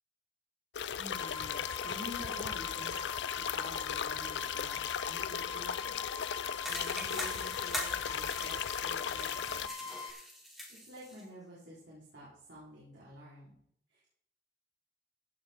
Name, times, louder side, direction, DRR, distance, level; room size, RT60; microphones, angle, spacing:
sound 1, 0.7-9.7, left 8 dB, 75° left, 0.4 m, -37 dB
voice 1, 1.0-3.0 3.3-9.9 10.7-13.5 13.9-14.1, equal, 80° right, -7 dB, 4.3 m, -49 dB
sound 2, 1.1-10.1, left 5 dB, 30° left, 0.6 m, -43 dB
sound 3, 6.6-11.2, equal, ahead, 2.3 m, -43 dB
15.5 x 5.6 x 4.5 m, 0.69 s
head